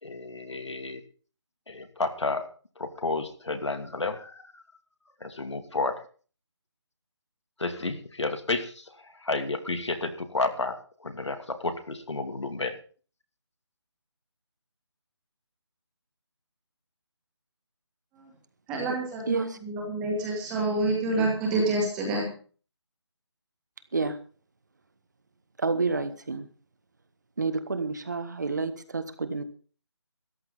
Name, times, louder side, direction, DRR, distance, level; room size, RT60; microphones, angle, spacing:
voice 1, 0.0-1.0 1.7-2.4 2.8-4.6 5.2-6.0 7.6-10.8 11.0-12.7, left 3 dB, 75° left, 8 dB, 2.6 m, -31 dB
voice 2, 18.7-22.3, right 2 dB, 5° right, 0 dB, 1.9 m, -28 dB
voice 3, 19.3-19.6 23.9-24.2 25.6-26.5 27.4-29.4, right 4 dB, 40° right, 11 dB, 1.3 m, -29 dB
13.5 x 10.5 x 5.5 m, 0.41 s
figure-of-eight pair, 175°, 15 cm